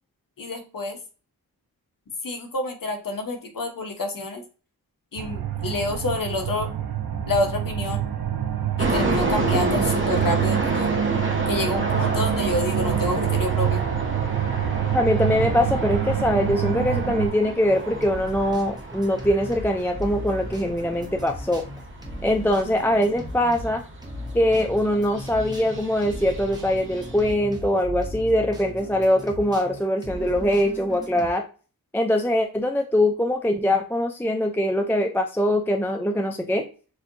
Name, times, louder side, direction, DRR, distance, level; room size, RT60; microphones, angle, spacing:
voice 1, 0.4-1.0 2.2-4.4 5.1-6.7 7.3-8.0 8.8-10.9 11.5-13.8, left 2 dB, 60° left, 4 dB, 1.0 m, -28 dB
sound 1, 5.2-17.3, right 9 dB, 75° right, 0.8 m, -26 dB
sound 2, 8.8-27.3, right 2 dB, 35° right, 1.0 m, -31 dB
voice 2, 14.9-21.6 22.2-23.8 24.3-31.4 31.9-36.6, left 1 dB, 5° left, 4 dB, 0.4 m, -22 dB
sound 3, 17.6-31.3, equal, 10° right, 1.0 m, -37 dB
6.6 x 2.7 x 2.6 m, 0.37 s
wide cardioid pair, 105°, 37 cm